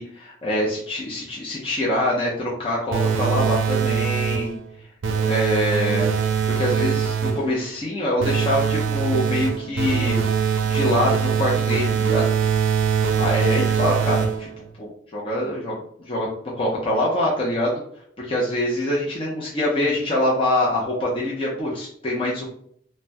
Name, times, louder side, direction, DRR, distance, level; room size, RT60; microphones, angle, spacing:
voice 1, 0.0-4.6 5.3-6.1 6.5-10.2 10.6-12.2 13.2-16.3 16.5-17.8 18.2-22.4, left 1 dB, 30° left, -5 dB, 0.6 m, -24 dB
sound 1, 2.9-4.6 5.0-7.5 8.2-14.6, right 7 dB, 70° right, 0.4 m, -22 dB
3.3 x 2.1 x 2.6 m, 0.66 s
head